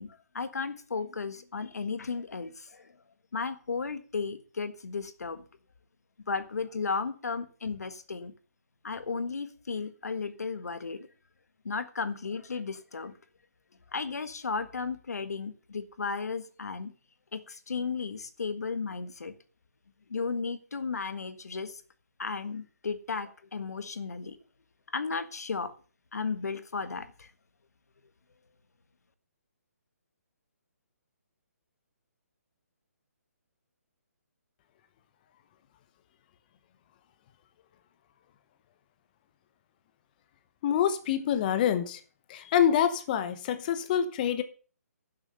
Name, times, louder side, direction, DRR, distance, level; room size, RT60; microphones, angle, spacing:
voice 1, 0.0-2.9 3.3-5.4 6.3-8.3 8.8-11.1 11.6-13.1 13.9-16.9 17.3-19.3 20.1-21.8 22.2-24.4 24.9-25.7 26.1-27.3, left 4 dB, 75° left, 1.5 m, -34 dB
voice 2, 40.6-42.0 42.3-44.4, left 9 dB, 30° left, 0.9 m, -26 dB
11.0 x 7.6 x 6.7 m
hypercardioid pair, 155°, 9 cm